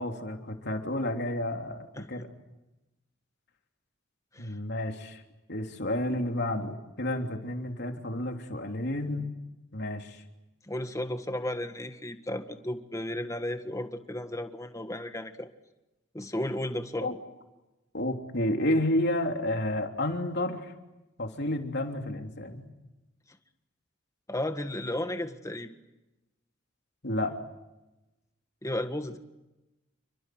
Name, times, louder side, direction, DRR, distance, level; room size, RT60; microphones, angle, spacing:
voice 1, 0.0-2.3 4.4-5.2 5.5-9.3 9.7-10.2 17.0-17.1 17.9-20.7 21.2-22.7 27.0-27.3, left 1 dB, 55° left, 4 dB, 3.3 m, -31 dB
voice 2, 10.7-15.5 16.1-17.2 24.3-25.7 28.6-29.2, left 1 dB, 15° left, 8 dB, 1.7 m, -34 dB
29.5 x 24.0 x 7.9 m, 0.98 s
head